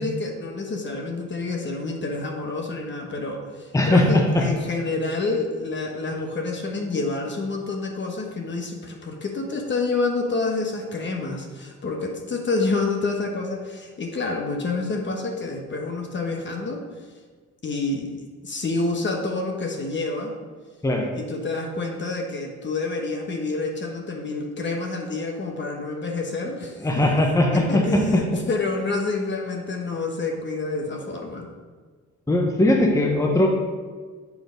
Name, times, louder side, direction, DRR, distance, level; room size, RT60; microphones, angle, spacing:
voice 1, 0.0-16.8 17.6-20.3 21.1-26.8 27.5-31.5, left 3 dB, 40° left, 2 dB, 1.1 m, -28 dB
voice 2, 3.7-4.4 20.8-21.1 26.8-28.2 32.3-33.5, left 1 dB, 10° left, 1 dB, 0.9 m, -19 dB
7.2 x 3.9 x 5.2 m, 1.5 s
cardioid pair, 90°, 30 cm